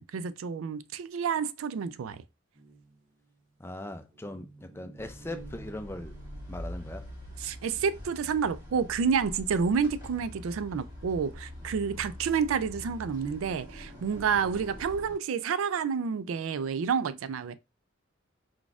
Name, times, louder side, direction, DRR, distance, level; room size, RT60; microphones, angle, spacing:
voice 1, 0.0-2.2 7.4-17.6, right 6 dB, 85° right, 0.4 m, -29 dB
sound 1, 2.5-7.8, right 3 dB, 40° right, 1.0 m, -52 dB
voice 2, 3.6-6.2 6.5-7.0, left 1 dB, 10° left, 0.4 m, -40 dB
sound 2, 5.0-15.2, left 1 dB, 20° right, 1.6 m, -44 dB
4.7 x 4.1 x 2.3 m
head